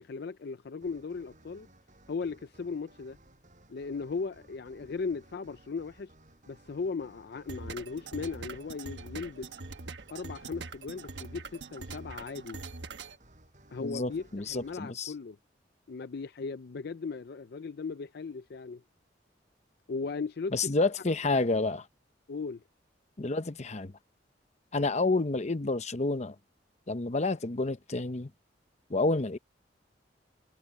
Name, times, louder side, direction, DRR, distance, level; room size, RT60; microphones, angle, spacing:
voice 1, 0.0-1.7 2.1-3.2 3.7-6.1 6.5-9.5 10.1-12.6 13.7-15.4 15.9-18.8 19.9-20.7 22.3-22.6, left 4 dB, 60° left, 0.5 m, -37 dB
sound 1, 0.8-14.8, right 1 dB, 45° right, 6.9 m, -59 dB
sound 2, 7.5-13.2, right 3 dB, 70° right, 1.3 m, -43 dB
voice 2, 13.8-15.1 20.5-21.9 23.2-23.9 24.7-26.3 26.9-28.3 28.9-29.4, left 3 dB, 40° left, 0.8 m, -29 dB
head